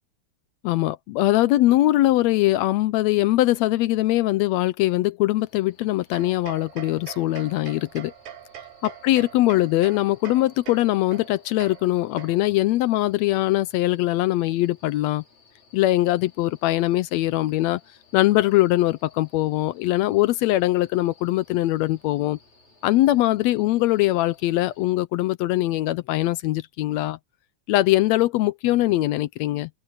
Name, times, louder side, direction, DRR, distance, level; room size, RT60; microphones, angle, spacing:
voice 1, 0.6-8.1 8.8-15.2 15.7-17.8 18.1-22.4 22.8-27.2 27.7-29.7, left 16 dB, 80° left, 1.6 m, -22 dB
sound 1, 5.4-24.9, left 4 dB, 65° left, 7.6 m, -58 dB
sound 2, 6.1-12.7, right 9 dB, 70° right, 2.8 m, -43 dB
omnidirectional pair, 3.6 m